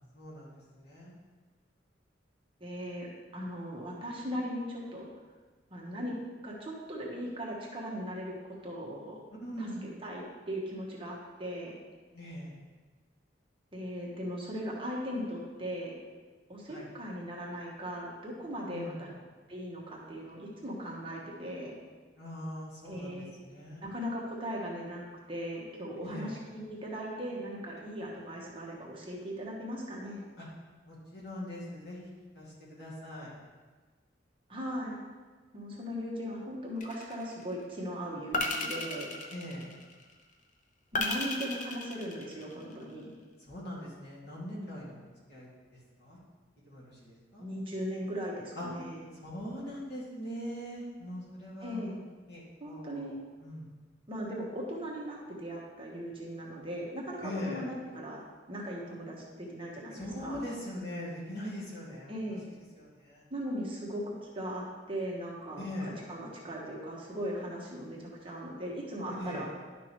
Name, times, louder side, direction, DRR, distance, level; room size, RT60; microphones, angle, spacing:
voice 1, 0.1-1.1 9.3-9.9 12.1-12.6 16.7-16.9 18.6-19.0 22.2-23.8 26.0-26.4 30.4-30.5 30.8-33.4 39.3-39.7 43.4-46.2 46.7-47.5 48.5-48.7 49.1-52.0 52.3-53.7 57.2-57.6 59.9-62.2 62.8-63.2 65.6-66.0 69.1-69.5, left 1 dB, 60° left, -6 dB, 2.4 m, -41 dB
voice 2, 2.6-3.1 3.3-5.1 5.7-6.2 6.4-9.2 9.6-11.8 13.7-15.9 16.5-19.1 19.5-21.7 22.9-23.4 23.8-30.2 34.5-35.0 35.5-39.1 40.9-43.1 47.4-49.0 51.6-52.0 52.6-53.1 54.1-58.2 58.5-60.4 62.1-62.5 63.3-69.5, equal, 30° right, -3 dB, 1.4 m, -38 dB
sound 1, 36.8-37.4 38.3-40.0 40.9-42.7, left 2 dB, 45° left, 0.8 m, -34 dB
11.0 x 5.9 x 3.2 m, 1.4 s
head